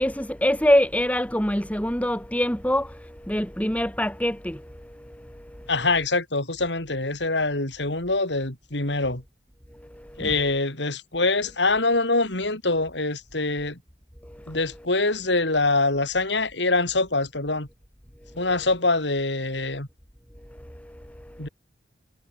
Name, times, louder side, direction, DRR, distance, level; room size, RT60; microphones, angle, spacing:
voice 1, 0.0-5.7 9.7-10.3 14.2-14.6 18.3-18.4 20.5-21.5, equal, 10° left, 7.9 m, -26 dB
voice 2, 5.7-9.2 10.2-13.8 14.5-17.7 18.3-19.9 21.4-21.5, left 3 dB, 75° left, 4.9 m, -24 dB
head